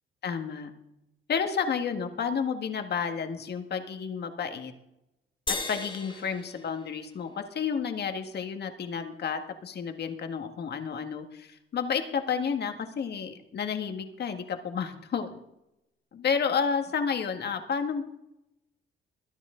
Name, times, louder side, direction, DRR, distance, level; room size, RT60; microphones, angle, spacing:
voice 1, 0.2-0.7 1.3-4.7 5.7-15.4 16.1-18.0, left 6 dB, 55° left, 6 dB, 1.7 m, -31 dB
sound 1, 5.5-8.0, left 3 dB, 25° left, 2.7 m, -37 dB
21.5 x 10.0 x 3.9 m, 0.87 s
cardioid pair, 90°, 20 cm